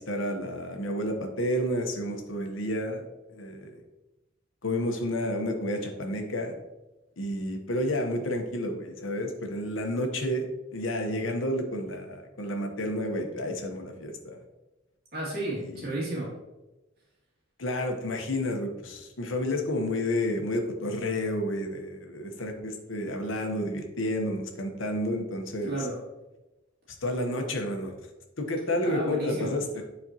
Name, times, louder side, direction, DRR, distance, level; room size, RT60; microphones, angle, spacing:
voice 1, 0.0-3.0 3.3-3.8 4.6-6.6 7.2-14.4 15.6-15.8 17.6-25.7 27.0-27.9 28.4-29.8, left 1 dB, 80° left, 4 dB, 1.0 m, -30 dB
voice 2, 15.1-16.4 25.6-26.0 28.8-29.6, right 1 dB, 50° right, -6 dB, 2.2 m, -32 dB
8.4 x 4.3 x 2.9 m, 1.0 s
head